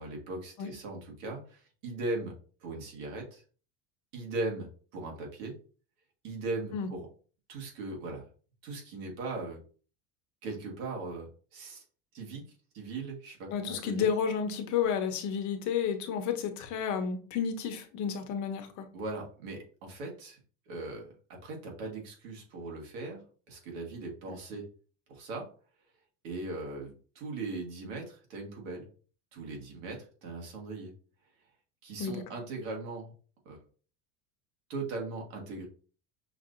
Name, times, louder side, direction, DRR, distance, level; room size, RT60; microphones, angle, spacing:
voice 1, 0.0-2.3 2.6-3.4 4.1-4.7 4.9-5.6 6.2-7.1 7.5-8.3 8.6-9.6 10.4-11.8 12.1-12.4 12.7-14.1 18.9-20.4 20.7-23.2 23.5-24.7 25.1-25.5 26.2-28.9 29.3-30.9 31.8-33.1 33.5-33.6 34.7-35.7, right 2 dB, 75° right, 0 dB, 1.9 m, -39 dB
voice 2, 13.5-18.9 32.0-32.2, left 7 dB, 45° left, 7 dB, 0.9 m, -31 dB
5.9 x 2.7 x 2.6 m, 0.40 s
supercardioid pair, 135°, 40 cm